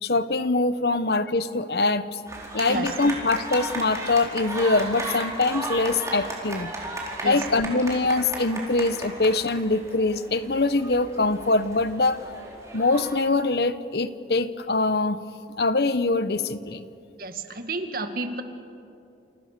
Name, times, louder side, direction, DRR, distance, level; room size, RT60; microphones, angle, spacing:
voice 1, 0.0-2.2 2.5-6.7 7.2-12.3 12.7-15.2 15.6-16.8, left 3 dB, 60° left, 13 dB, 1.0 m, -23 dB
sound 1, 2.3-13.2, right 2 dB, 15° right, 4.4 m, -35 dB
voice 2, 17.2-18.4, right 2 dB, 50° right, 6 dB, 2.1 m, -31 dB
29.5 x 28.5 x 6.8 m, 2.6 s
head